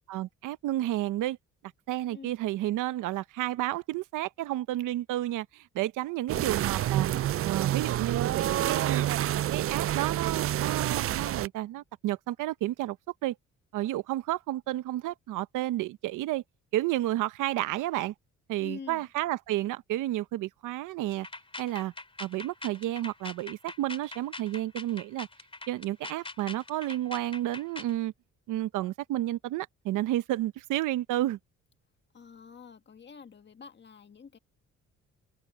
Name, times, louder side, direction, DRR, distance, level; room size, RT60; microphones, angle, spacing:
voice 1, 0.1-1.4 1.9-7.1 7.4-9.1 9.5-13.0 13.2-13.4 13.7-16.4 16.7-18.1 18.5-21.3 21.6-21.9 22.2-25.3 25.7-28.1 28.5-31.4, right 15 dB, 90° right, 0.9 m, -31 dB
voice 2, 6.3-6.6 18.6-19.1 32.1-34.4, left 5 dB, 35° left, 1.7 m, -47 dB
sound 1, 6.3-11.5, right 12 dB, 50° right, 0.4 m, -28 dB
sound 2, 21.1-28.0, left 2 dB, 20° left, 2.8 m, -43 dB
cardioid pair, 90°, 30 cm